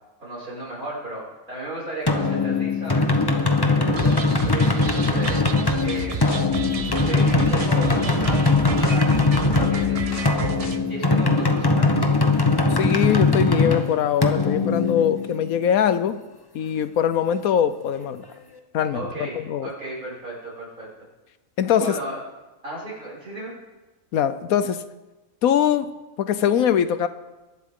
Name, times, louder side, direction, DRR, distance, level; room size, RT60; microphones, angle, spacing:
voice 1, 0.2-5.4 5.8-6.2 7.1-10.4 10.9-12.1 18.9-20.9 21.8-22.2 22.6-23.5, right 2 dB, 90° right, -7 dB, 6.6 m, -35 dB
sound 1, 2.1-15.6, left 3 dB, 20° left, 0.9 m, -21 dB
sound 2, 4.0-10.8, right 5 dB, 45° right, 0.5 m, -32 dB
sound 3, 5.6-10.7, left 5 dB, 45° left, 1.3 m, -37 dB
voice 2, 12.8-16.2 16.5-18.2 18.7-19.7 21.6-21.9 24.1-24.8 25.4-27.1, left 9 dB, 85° left, 12 dB, 1.2 m, -22 dB
22.0 x 12.0 x 3.8 m, 1.1 s
omnidirectional pair, 1.5 m